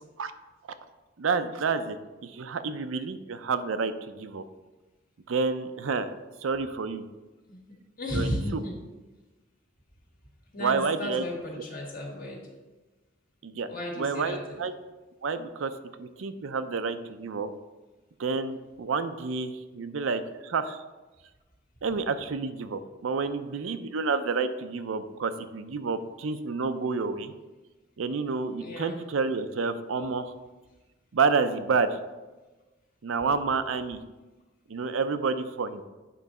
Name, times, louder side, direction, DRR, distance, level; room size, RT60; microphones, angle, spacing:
voice 1, 1.2-2.0 2.2-4.4 5.3-6.1 6.4-7.0 8.1-8.6 10.6-11.2 13.4-13.7 14.0-14.7 15.2-15.7 16.0-17.5 18.2-20.8 21.8-27.3 28.0-30.3 31.1-32.0 33.0-34.0 34.7-35.8, right 4 dB, 85° right, 10 dB, 0.5 m, -29 dB
voice 2, 8.0-8.8 10.5-12.4 13.7-14.6 28.6-29.0, left 1 dB, 45° left, -1 dB, 1.7 m, -34 dB
8.4 x 3.9 x 5.4 m, 1.2 s
head